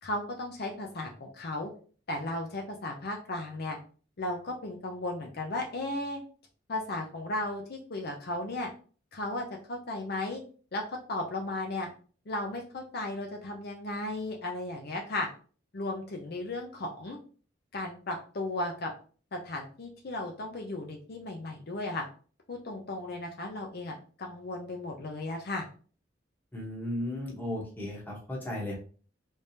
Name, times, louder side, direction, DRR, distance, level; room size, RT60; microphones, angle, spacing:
voice 1, 0.0-1.7 2.1-3.8 4.2-6.2 6.7-8.7 9.1-10.4 10.7-11.9 12.3-15.3 15.7-17.2 17.7-18.9 19.3-22.1 22.5-25.7, left 2 dB, 55° left, 1 dB, 0.7 m, -35 dB
voice 2, 26.5-28.8, left 1 dB, 10° left, -3 dB, 1.0 m, -35 dB
3.3 x 3.3 x 2.7 m, 0.39 s
head